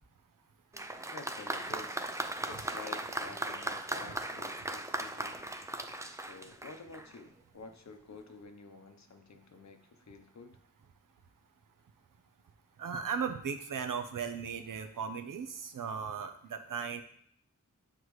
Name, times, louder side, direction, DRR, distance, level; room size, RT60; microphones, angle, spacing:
Applause, 0.7-7.2 8.1-8.2, right 1 dB, 10° right, 0.4 m, -38 dB
voice 1, 1.1-2.0 2.5-5.4 6.1-10.6, left 4 dB, 60° left, 6 dB, 0.8 m, -50 dB
voice 2, 12.8-17.0, right 6 dB, 80° right, 7 dB, 0.7 m, -37 dB
9.0 x 4.0 x 3.1 m, 0.64 s
wide cardioid pair, 95°, 32 cm